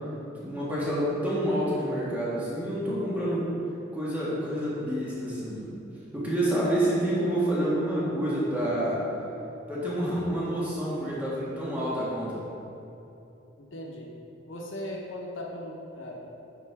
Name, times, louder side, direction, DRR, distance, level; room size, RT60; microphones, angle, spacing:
voice 1, 0.4-3.4 3.9-5.7 6.1-9.0 9.7-12.4, right 1 dB, 10° right, -9 dB, 1.6 m, -28 dB
voice 2, 13.6-14.2 14.5-16.3, left 1 dB, 80° left, -1 dB, 0.9 m, -38 dB
10.0 x 5.8 x 3.5 m, 2.9 s
head